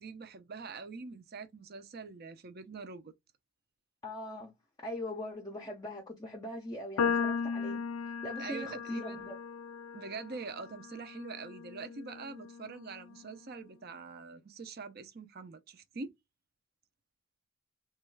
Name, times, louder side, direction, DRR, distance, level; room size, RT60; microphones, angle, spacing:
voice 1, 0.0-3.1 8.4-9.3 9.9-16.1, right 4 dB, 45° right, 0.5 m, -44 dB
voice 2, 4.0-4.5 4.8-7.8 8.2-9.4, left 1 dB, 15° left, 0.5 m, -41 dB
sound 1, 7.0-13.3, left 6 dB, 80° left, 0.4 m, -37 dB
3.1 x 2.3 x 3.2 m
head